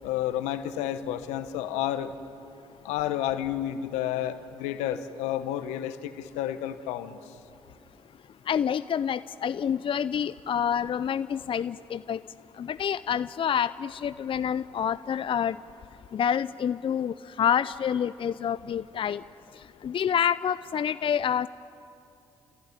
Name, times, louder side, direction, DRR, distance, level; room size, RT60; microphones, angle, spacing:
voice 1, 0.0-2.1 2.8-7.2, left 11 dB, 85° left, 11 dB, 1.0 m, -30 dB
voice 2, 8.5-12.2 12.6-15.6 16.1-19.2 19.5-21.5, left 8 dB, 50° left, 16 dB, 0.5 m, -28 dB
28.0 x 16.0 x 9.8 m, 2.7 s
hypercardioid pair, 50°, 11 cm